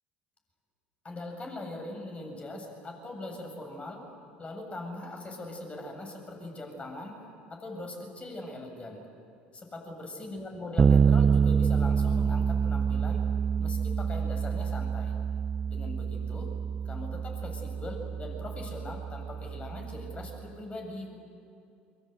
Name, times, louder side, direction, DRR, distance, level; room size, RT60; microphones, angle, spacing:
voice 1, 1.0-4.1 4.4-7.2 7.5-9.1 9.5-13.2 13.6-15.2 15.7-16.5 16.9-21.1, left 1 dB, 25° left, 2 dB, 7.4 m, -41 dB
Bass guitar, 10.8-20.4, right 6 dB, 30° right, 0.5 m, -27 dB
28.0 x 24.5 x 8.2 m, 2.6 s
hypercardioid pair, 70°, 5 cm